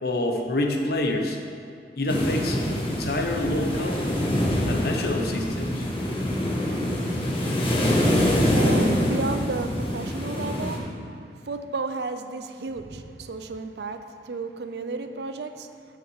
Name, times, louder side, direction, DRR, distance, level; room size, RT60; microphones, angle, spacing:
voice 1, 0.0-1.4 2.0-4.0 4.7-5.9, left 1 dB, 60° left, 2 dB, 0.9 m, -27 dB
sound 1, 2.1-10.8, left 1 dB, 30° left, 1.3 m, -25 dB
voice 2, 8.0-15.7, right 3 dB, 70° right, 8 dB, 0.5 m, -33 dB
6.4 x 5.7 x 7.0 m, 2.4 s
head